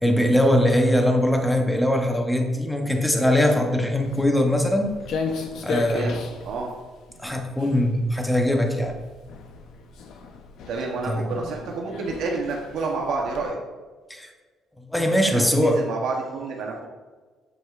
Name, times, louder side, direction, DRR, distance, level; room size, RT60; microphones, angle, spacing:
voice 1, 0.0-4.9 5.6-6.2 7.2-8.9 11.1-11.3 14.1-14.3 14.8-15.8, left 1 dB, 5° left, 3 dB, 0.7 m, -21 dB
Walk footsteps, 4.0-13.5, left 4 dB, 65° left, 0.7 m, -35 dB
voice 2, 5.8-6.7 10.7-13.6 15.2-16.9, right 3 dB, 65° right, 0 dB, 0.8 m, -29 dB
7.6 x 6.2 x 2.4 m, 1.4 s
cardioid pair, 155°, 0 cm